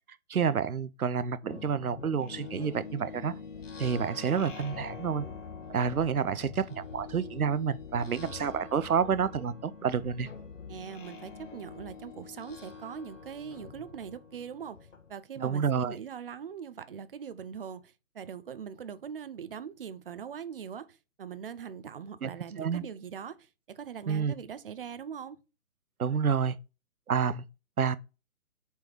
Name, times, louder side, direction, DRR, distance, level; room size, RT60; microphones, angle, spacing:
voice 1, 0.3-3.3 3.8-5.3 5.7-10.3 15.4-16.0 22.2-22.3 22.6-22.8 24.1-24.3 26.0-26.6 27.1-27.4 27.8-28.0, right 6 dB, 85° right, 0.7 m, -29 dB
sound 1, 1.5-15.1, left 5 dB, 60° left, 1.4 m, -45 dB
voice 2, 10.7-14.8 15.1-25.4, right 7 dB, 40° right, 0.6 m, -42 dB
5.3 x 4.5 x 4.5 m
figure-of-eight pair, 140°, 42 cm